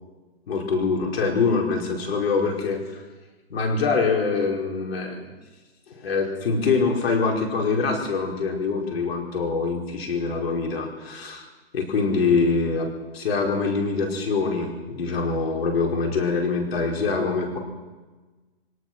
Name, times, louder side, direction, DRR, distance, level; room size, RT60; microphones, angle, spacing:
voice 1, 0.5-3.0 3.5-5.3 6.0-11.5 11.7-17.6, left 4 dB, 75° left, 1 dB, 5.1 m, -24 dB
23.5 x 18.0 x 6.2 m, 1.3 s
hypercardioid pair, 130°, 31 cm